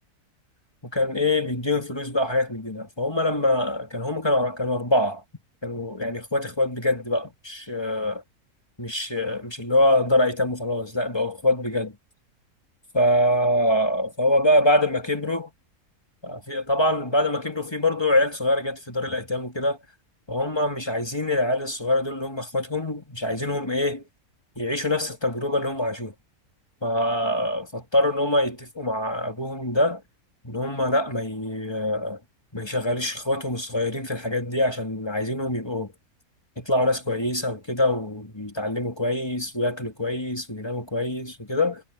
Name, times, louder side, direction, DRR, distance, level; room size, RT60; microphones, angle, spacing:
voice 1, 0.8-5.2 5.6-8.2 8.8-12.0 12.9-15.5 16.2-19.8 20.3-24.0 24.6-26.1 26.8-30.0 30.4-32.2 32.5-35.9 36.6-41.8, left 1 dB, 15° left, 2.4 m, -24 dB
omnidirectional pair, 1.6 m